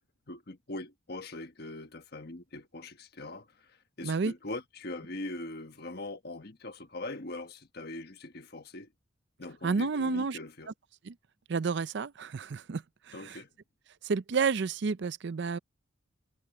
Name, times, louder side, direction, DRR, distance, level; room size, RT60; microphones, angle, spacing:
voice 1, 0.3-8.9 9.4-10.7 13.1-13.5, left 2 dB, 50° left, 1.3 m, -42 dB
voice 2, 4.0-4.3 9.6-10.4 11.0-11.2 11.5-13.4 14.0-15.6, right 5 dB, 60° right, 0.5 m, -30 dB
head